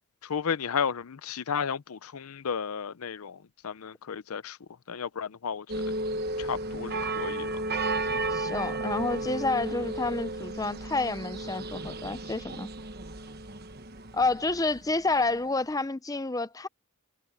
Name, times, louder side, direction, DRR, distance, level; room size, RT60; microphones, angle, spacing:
voice 1, 0.2-3.4 3.6-4.6 4.9-5.7 6.4-7.5, left 6 dB, 90° left, 0.6 m, -33 dB
sound 1, 5.7-14.9 15.2-15.4, right 2 dB, 45° right, 1.2 m, -33 dB
voice 2, 8.3-12.7 14.1-16.7, left 3 dB, 15° left, 0.6 m, -29 dB
head